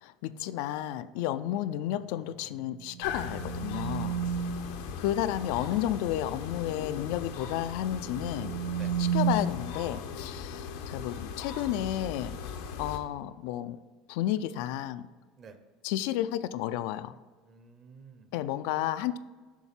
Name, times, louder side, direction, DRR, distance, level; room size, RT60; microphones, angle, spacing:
voice 1, 0.0-4.1 5.0-8.5 9.0-12.3 12.8-13.8 14.1-15.0 15.8-17.1 18.3-19.2, left 12 dB, 70° left, 13 dB, 0.3 m, -32 dB
sound 1, 2.5-4.8 7.8-9.3, right 8 dB, 85° right, 0.7 m, -32 dB
sound 2, 3.0-13.0, left 6 dB, 85° left, 0.8 m, -39 dB
voice 2, 4.1-5.0 8.7-8.9 15.4-15.6 17.5-18.3, right 5 dB, 30° right, 9 dB, 0.6 m, -52 dB
7.1 x 3.5 x 5.8 m, 1.4 s
cardioid pair, 155°, 0 cm